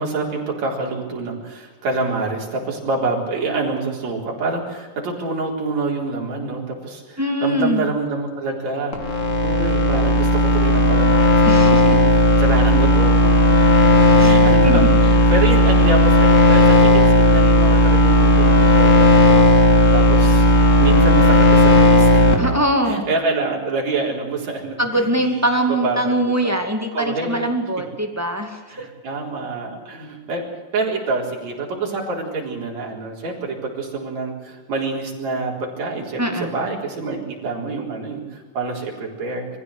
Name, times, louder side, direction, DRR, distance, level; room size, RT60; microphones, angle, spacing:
voice 1, 0.0-12.0 12.4-13.2 14.2-19.5 19.9-20.5 20.8-22.5 22.9-26.5 26.9-27.5 28.7-30.4 30.7-39.6, right 3 dB, 60° right, -1 dB, 5.2 m, -26 dB
voice 2, 7.2-7.8 11.4-12.0 14.2-14.3 14.6-14.8 22.4-23.1 24.8-28.9 36.2-36.5, right 1 dB, 5° right, 4 dB, 1.7 m, -22 dB
sound 1, 8.9-22.3, equal, 25° left, 2.3 m, -13 dB
23.5 x 15.5 x 8.1 m, 1.3 s
omnidirectional pair, 3.6 m